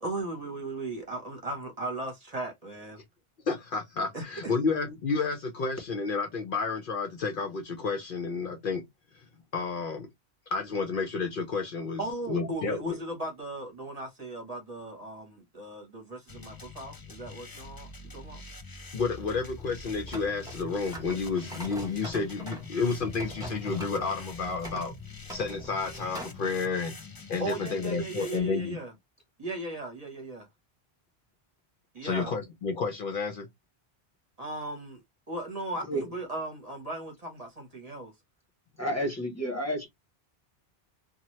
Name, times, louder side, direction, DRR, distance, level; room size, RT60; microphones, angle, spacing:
voice 1, 0.0-3.0 4.1-4.5 4.9-5.0 12.0-18.4 27.4-28.9 29.4-30.5 31.9-32.4 34.4-35.0 35.3-38.1, right 2 dB, 40° right, 0.9 m, -37 dB
voice 2, 3.5-8.8 9.1-9.2 9.5-10.1 10.5-12.0 12.3-12.9 18.9-24.9 25.3-26.9 27.3-28.8 32.0-33.5, left 4 dB, 60° left, 0.7 m, -31 dB
sound 1, 16.3-28.4, left 3 dB, 35° left, 0.3 m, -45 dB
sound 2, 19.1-26.4, equal, 5° right, 0.7 m, -43 dB
voice 3, 35.8-36.1 38.8-39.9, equal, 15° left, 1.0 m, -31 dB
2.8 x 2.2 x 3.0 m
omnidirectional pair, 1.1 m